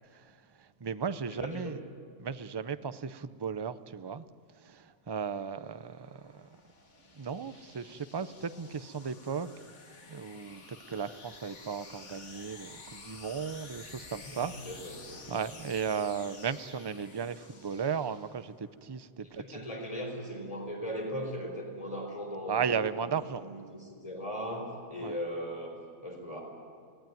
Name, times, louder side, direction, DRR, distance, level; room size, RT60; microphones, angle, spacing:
voice 1, 0.6-1.8 2.2-4.2 4.6-6.4 7.1-9.5 10.1-14.7 15.3-19.7 22.5-23.4 25.0-25.2, right 6 dB, 30° right, 12 dB, 0.4 m, -35 dB
voice 2, 1.3-1.8 14.2-15.0 19.2-25.7 26.0-26.4, equal, 25° left, 2 dB, 4.4 m, -38 dB
sound 1, 5.2-18.7, left 4 dB, 65° left, 2.0 m, -51 dB
25.0 x 18.0 x 9.3 m, 2.2 s
omnidirectional pair, 1.3 m